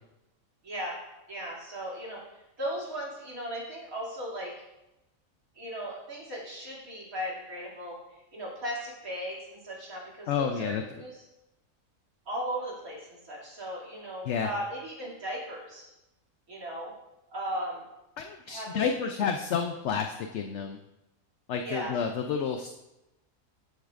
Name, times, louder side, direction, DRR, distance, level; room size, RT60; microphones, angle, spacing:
voice 1, 0.6-0.9 1.3-4.5 5.5-7.9 8.3-11.2 12.3-15.8 16.5-16.9 17.3-17.8 18.4-19.1 21.6-21.9, equal, 80° right, -5 dB, 3.1 m, -37 dB
voice 2, 10.3-10.8 14.3-14.5 18.2-20.8 21.5-22.7, left 6 dB, 65° left, 5 dB, 0.8 m, -30 dB
14.0 x 8.2 x 2.5 m, 0.94 s
omnidirectional pair, 1.5 m